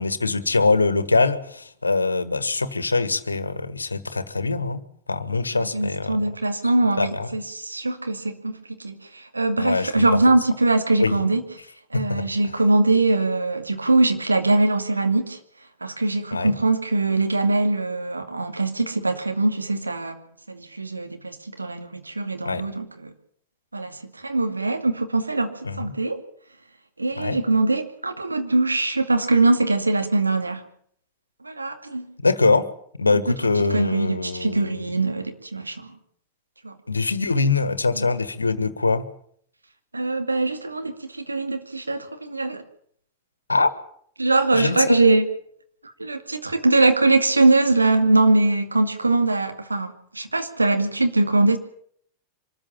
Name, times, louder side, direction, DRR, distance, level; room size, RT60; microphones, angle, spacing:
voice 1, 0.0-4.8 5.1-6.2 7.0-7.3 9.6-10.0 11.0-11.1 11.9-12.2 16.3-16.5 22.4-22.6 25.6-25.9 27.2-27.4 32.2-32.7 33.0-34.7 36.9-39.0 43.5-43.7 44.5-45.1, left 3 dB, 80° left, 15 dB, 1.5 m, -23 dB
voice 2, 5.5-11.4 11.9-15.4 15.8-23.1 23.7-26.2 27.0-30.6 31.4-32.1 33.1-36.0 36.6-36.7 37.9-38.1 39.9-42.6 44.2-45.2 46.0-51.6, right 2 dB, 80° right, 6 dB, 2.4 m, -22 dB
25.0 x 14.0 x 8.8 m, 0.65 s
figure-of-eight pair, 90°, 0 cm